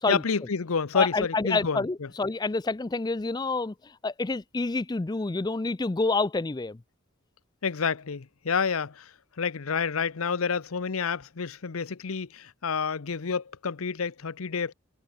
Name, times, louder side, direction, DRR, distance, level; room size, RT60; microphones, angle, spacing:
voice 1, 0.1-1.8 7.6-9.1 9.4-14.7, left 5 dB, 80° left, 0.8 m, -29 dB
voice 2, 0.9-6.8, left 3 dB, 20° left, 0.4 m, -28 dB
head